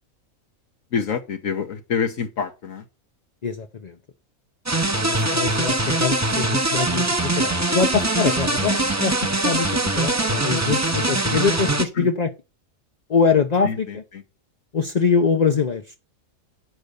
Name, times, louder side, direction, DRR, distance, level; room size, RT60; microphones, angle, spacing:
voice 1, 0.9-2.8 6.2-6.5 9.0-9.1 12.0-12.1 13.6-14.2, left 6 dB, 70° left, 1.4 m, -27 dB
voice 2, 3.4-4.0 5.0-12.3 13.1-14.0 14.7-16.0, left 5 dB, 35° left, 0.7 m, -23 dB
sound 1, 4.7-11.8, right 2 dB, 15° right, 0.8 m, -22 dB
9.0 x 5.2 x 6.7 m
omnidirectional pair, 1.4 m